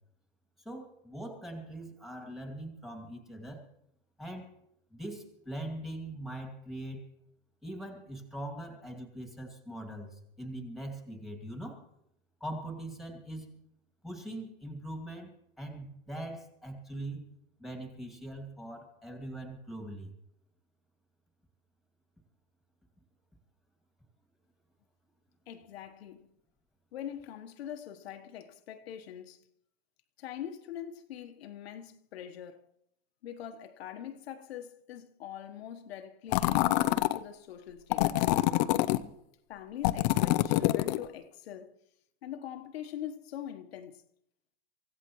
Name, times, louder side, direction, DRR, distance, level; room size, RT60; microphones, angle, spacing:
voice 1, 0.6-3.6 4.2-4.5 4.9-7.0 7.6-11.8 12.4-13.6 14.0-17.3 17.6-20.1, right 1 dB, ahead, 2.5 m, -42 dB
voice 2, 25.5-26.3 26.9-29.5 30.2-32.7 33.2-38.3 39.5-41.7 42.2-44.0, left 10 dB, 70° left, 1.3 m, -43 dB
sound 1, 36.3-37.2 37.9-39.0 39.8-41.0, left 16 dB, 40° left, 0.7 m, -26 dB
25.0 x 16.5 x 3.1 m
supercardioid pair, 150°, 32 cm